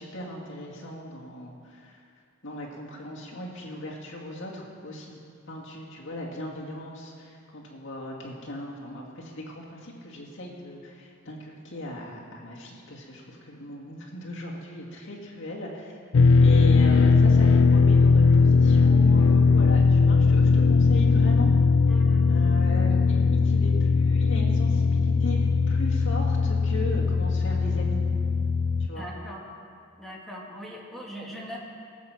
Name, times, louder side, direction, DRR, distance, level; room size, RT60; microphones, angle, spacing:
voice 1, 0.0-2.0 2.4-5.2 5.5-16.0 16.4-21.5 22.3-28.0 28.9-29.1, left 1 dB, 65° left, -2 dB, 2.2 m, -38 dB
sound 1, 16.1-28.9, left 4 dB, 85° left, 0.5 m, -19 dB
voice 2, 21.9-22.3 28.9-29.5 30.0-31.6, equal, ahead, -4 dB, 2.2 m, -40 dB
19.0 x 7.9 x 5.9 m, 2.3 s
head